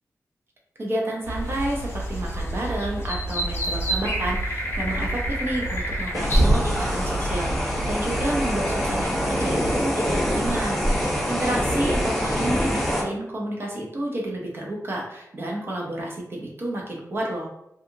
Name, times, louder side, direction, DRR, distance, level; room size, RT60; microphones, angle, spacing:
voice 1, 0.8-17.5, right 1 dB, 40° right, -1 dB, 0.6 m, -30 dB
sound 1, 1.2-9.8, right 1 dB, 45° left, 0.7 m, -29 dB
sound 2, 6.1-13.0, equal, 5° left, 0.5 m, -24 dB
2.7 x 2.4 x 2.6 m, 0.80 s
wide cardioid pair, 155°, 6 cm